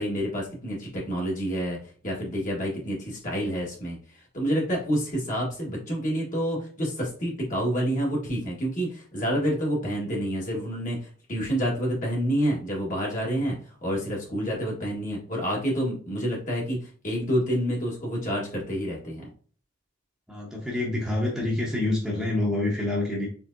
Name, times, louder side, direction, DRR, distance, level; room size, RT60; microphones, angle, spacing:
voice 1, 0.0-1.8 2.0-4.0 4.3-19.3, equal, 40° left, -3 dB, 1.5 m, -28 dB
voice 2, 20.3-23.3, left 2 dB, ahead, -4 dB, 1.0 m, -27 dB
4.4 x 3.5 x 2.6 m, 0.43 s
head